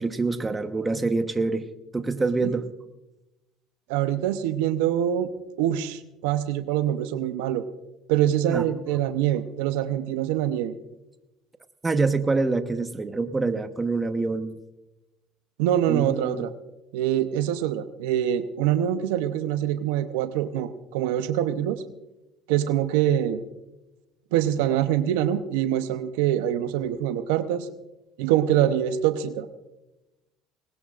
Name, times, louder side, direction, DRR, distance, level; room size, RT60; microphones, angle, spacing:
voice 1, 0.0-1.7 1.9-2.7 8.5-8.6 11.8-14.6 15.9-16.4, right 3 dB, 20° right, 9 dB, 1.1 m, -26 dB
voice 2, 3.9-5.3 5.6-7.6 8.1-10.7 15.6-16.5 16.9-21.8 22.5-23.4 24.3-27.7 28.2-29.5, right 11 dB, 85° right, 11 dB, 0.7 m, -24 dB
20.0 x 18.0 x 2.5 m, 0.98 s
supercardioid pair, 90°, 0 cm